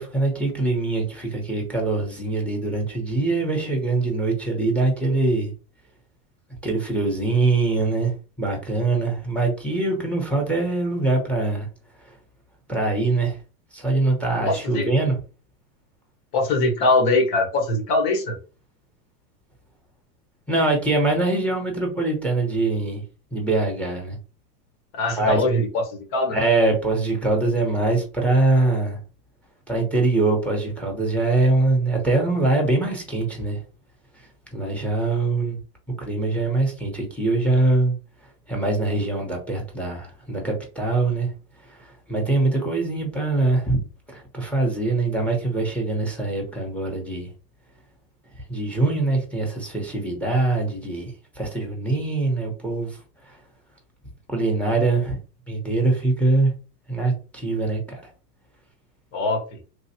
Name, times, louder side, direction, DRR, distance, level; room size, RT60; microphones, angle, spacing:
voice 1, 0.0-5.5 6.6-8.1 8.4-11.7 12.7-13.4 13.7-15.1 20.5-23.0 23.3-24.2 25.2-25.4 26.3-29.0 29.7-33.6 34.5-35.6 36.0-37.9 38.5-41.3 41.7-41.8 42.1-43.8 44.1-47.3 48.5-51.1 51.4-53.0 53.3-53.4 54.3-55.1 55.5-56.5 56.9-58.0, right 2 dB, 5° left, 1.0 m, -23 dB
voice 2, 14.4-14.9 16.3-18.3 24.9-26.4 59.1-59.4, left 2 dB, 55° left, 1.5 m, -22 dB
3.2 x 2.4 x 2.8 m
supercardioid pair, 120°, 48 cm